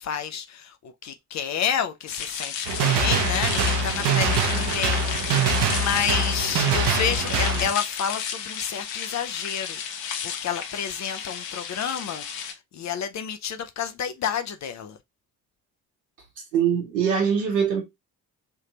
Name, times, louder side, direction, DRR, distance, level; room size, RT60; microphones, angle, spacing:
voice 1, 0.0-15.0, left 8 dB, 35° left, 0.5 m, -30 dB
sound 1, 2.1-12.5, left 7 dB, 55° left, 0.9 m, -33 dB
sound 2, 2.6-7.7, right 4 dB, 55° right, 1.0 m, -24 dB
voice 2, 16.5-17.8, right 7 dB, 75° right, 1.3 m, -22 dB
3.6 x 2.8 x 2.7 m
figure-of-eight pair, 40°, 50 cm